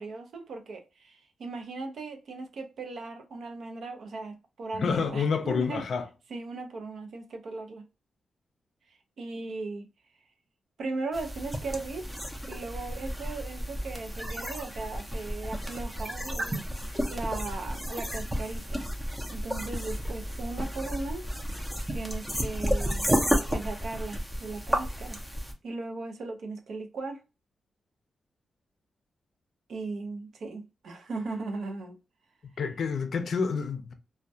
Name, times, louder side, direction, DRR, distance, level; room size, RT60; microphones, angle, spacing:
voice 1, 0.0-5.8 6.3-7.9 9.2-9.9 10.8-12.1 12.5-16.7 17.1-18.9 19.3-21.3 21.9-23.1 23.5-25.2 25.6-27.2 29.7-32.0, right 3 dB, 65° right, 0.5 m, -37 dB
voice 2, 4.7-6.1 32.6-33.9, left 5 dB, 60° left, 0.4 m, -28 dB
sound 1, 11.1-25.5, equal, 10° right, 0.5 m, -32 dB
2.2 x 2.1 x 2.6 m
wide cardioid pair, 145°, 0 cm